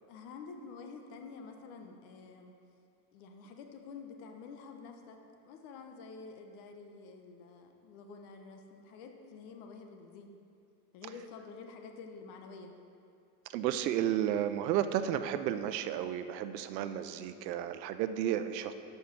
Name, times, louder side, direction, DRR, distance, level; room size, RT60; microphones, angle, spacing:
voice 1, 0.1-2.5 3.1-10.3 10.9-12.7, left 4 dB, 65° left, 4 dB, 1.1 m, -49 dB
voice 2, 13.5-18.7, right 10 dB, 85° right, 11 dB, 0.7 m, -32 dB
8.5 x 5.7 x 6.1 m, 2.5 s
supercardioid pair, 115°, 48 cm